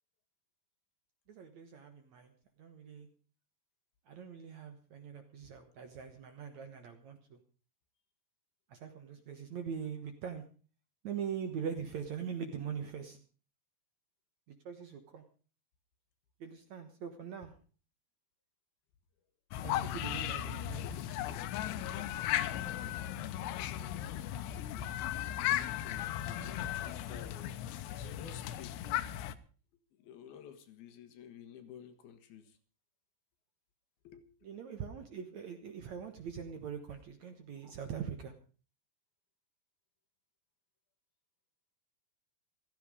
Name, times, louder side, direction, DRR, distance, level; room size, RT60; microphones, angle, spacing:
voice 1, 1.3-2.3 2.6-3.1 4.1-7.4 8.7-10.4 11.0-13.2 14.5-15.2 16.4-17.5 19.6-20.9 34.4-38.3, right 7 dB, 60° right, 2.1 m, -42 dB
sound 1, 19.5-29.4, left 12 dB, 90° left, 3.0 m, -36 dB
voice 2, 20.8-22.8 23.9-24.0 24.8-24.9 25.2-28.8 30.0-32.6 34.0-34.3, left 8 dB, 70° left, 3.4 m, -53 dB
16.0 x 14.0 x 4.9 m
omnidirectional pair, 4.7 m